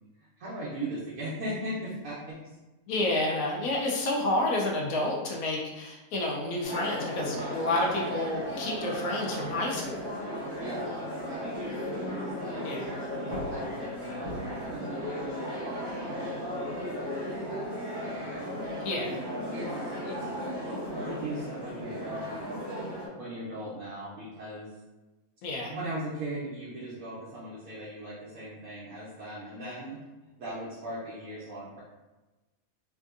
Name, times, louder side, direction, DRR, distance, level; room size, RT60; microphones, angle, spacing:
voice 1, 0.4-2.6 10.6-12.7 13.5-18.6 19.5-22.2 23.0-24.7 25.7-30.0 30.4-31.8, right 1 dB, 70° right, -8 dB, 1.2 m, -39 dB
voice 2, 2.9-10.1 12.6-12.9 18.8-19.2 25.4-25.8, left 2 dB, 75° left, -1 dB, 1.0 m, -30 dB
sound 1, 6.6-23.1, equal, 25° right, 0.5 m, -35 dB
3.3 x 2.7 x 2.4 m, 1.1 s
omnidirectional pair, 1.6 m